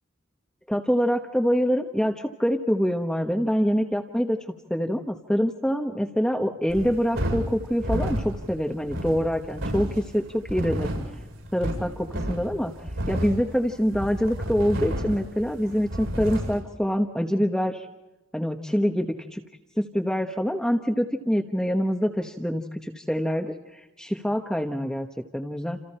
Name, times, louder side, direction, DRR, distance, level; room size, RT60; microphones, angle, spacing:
voice 1, 0.7-4.4 4.7-10.9 11.5-12.7 13.1-17.9 18.3-19.4 19.8-25.1 25.3-25.8, equal, 5° left, 3 dB, 1.1 m, -25 dB
sound 1, 6.7-16.6, equal, 90° right, 7.7 m, -31 dB
29.0 x 28.5 x 4.4 m, 1.1 s
head